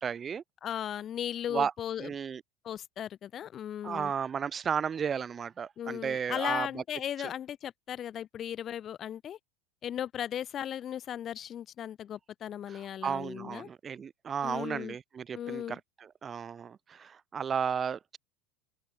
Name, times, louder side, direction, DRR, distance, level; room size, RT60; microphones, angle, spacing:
voice 1, 0.0-0.4 1.5-1.7 2.0-2.4 3.8-6.8 7.2-7.3 12.7-18.2, right 7 dB, 25° right, 1.3 m, -34 dB
voice 2, 0.6-2.1 2.6-4.1 5.8-9.4 9.8-13.7 14.4-15.0 15.3-15.8, left 10 dB, 35° left, 0.8 m, -37 dB
supercardioid pair, 125°, 0 cm